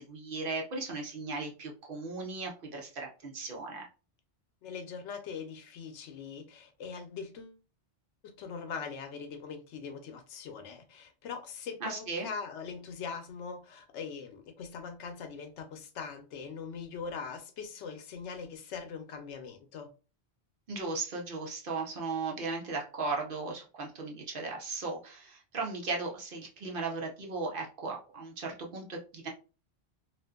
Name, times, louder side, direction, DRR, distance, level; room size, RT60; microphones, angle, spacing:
voice 1, 0.0-3.9 11.8-12.3 20.7-29.3, right 3 dB, 55° right, 0.8 m, -37 dB
voice 2, 4.6-7.6 8.2-19.9, left 5 dB, 90° left, 0.9 m, -42 dB
2.5 x 2.4 x 2.3 m
omnidirectional pair, 1.1 m